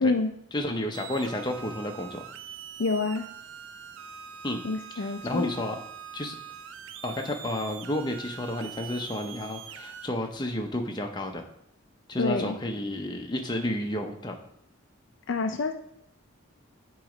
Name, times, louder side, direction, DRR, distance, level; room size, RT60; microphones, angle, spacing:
voice 1, 0.0-0.3 2.8-3.3 4.6-5.5 12.2-12.6 15.3-15.7, left 3 dB, 55° left, 6 dB, 0.4 m, -27 dB
voice 2, 0.5-2.2 4.4-4.6 4.9-5.8 6.1-6.3 7.0-11.5 12.1-14.4, left 1 dB, 20° left, 3 dB, 0.7 m, -31 dB
sound 1, 0.9-10.1, right 8 dB, 60° right, 0.5 m, -44 dB
9.1 x 3.1 x 5.0 m, 0.75 s
head